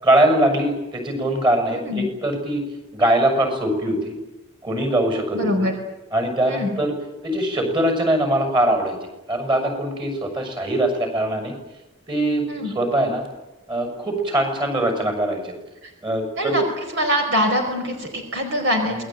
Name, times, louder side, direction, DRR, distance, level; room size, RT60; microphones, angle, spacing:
voice 1, 0.0-2.6 2.9-4.1 4.6-5.7 6.1-6.9 7.2-9.0 9.3-11.5 12.1-13.2 13.7-15.5 16.0-16.6, right 1 dB, 20° right, 6 dB, 6.8 m, -22 dB
voice 2, 5.3-5.8 6.4-6.8 12.5-12.7 15.8-15.9 16.4-16.6 16.9-19.0, equal, 55° right, 4 dB, 4.9 m, -23 dB
28.0 x 20.5 x 9.1 m, 1.0 s
head